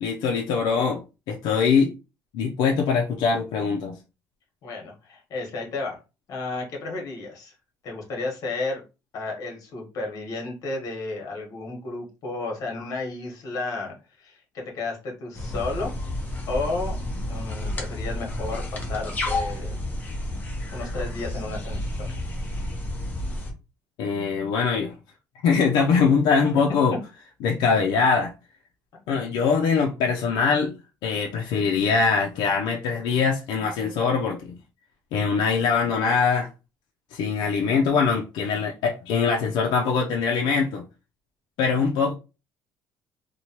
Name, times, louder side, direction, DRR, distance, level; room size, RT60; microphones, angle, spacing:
voice 1, 0.0-1.9 2.3-4.0 24.0-24.9 25.4-26.9 27.4-28.3 29.1-30.7 31.0-34.6 35.1-36.5 37.1-40.8 41.6-42.1, left 5 dB, 85° left, 0.5 m, -22 dB
voice 2, 4.6-6.0 6.3-7.5 7.8-8.8 9.1-15.9 16.5-16.9 17.3-19.8 20.7-22.2 26.5-26.6, left 3 dB, 55° left, 1.2 m, -32 dB
sound 1, 15.3-23.5, left 1 dB, 25° left, 0.7 m, -31 dB
3.0 x 2.2 x 2.8 m
cardioid pair, 155°, 7 cm